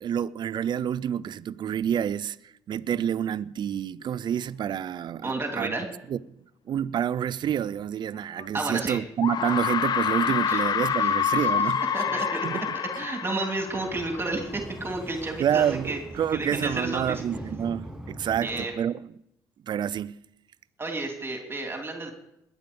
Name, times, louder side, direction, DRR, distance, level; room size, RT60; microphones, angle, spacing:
voice 1, 0.0-5.8 6.1-6.4 6.7-11.8 12.4-12.6 15.4-19.1 19.6-20.2, right 9 dB, 55° right, 0.6 m, -28 dB
voice 2, 5.2-5.9 8.5-9.0 10.2-10.6 11.0-11.1 11.5-12.5 12.7-16.0 16.3-17.2 18.4-18.7 20.8-22.1, right 2 dB, 25° right, 2.9 m, -31 dB
sound 1, 8.4-8.5 9.2-14.4, left 8 dB, 50° left, 0.7 m, -27 dB
Sliding door, 13.5-18.9, right 1 dB, 5° right, 6.7 m, -41 dB
20.5 x 9.3 x 5.3 m
supercardioid pair, 70°, 9 cm